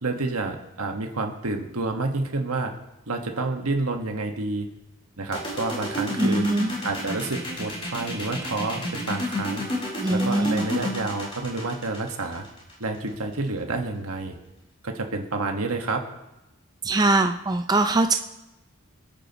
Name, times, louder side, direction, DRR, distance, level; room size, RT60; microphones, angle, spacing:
voice 1, 0.0-2.7 3.1-4.7 5.2-6.5 6.8-9.6 10.1-12.4 12.8-14.4 14.8-16.0, right 3 dB, 85° right, 3 dB, 1.5 m, -29 dB
sound 1, 5.3-13.1, left 1 dB, 25° left, 3.8 m, -30 dB
voice 2, 6.1-6.7 10.0-10.6 16.8-18.1, right 2 dB, 15° right, 7 dB, 0.4 m, -22 dB
26.0 x 9.0 x 3.0 m, 0.97 s
head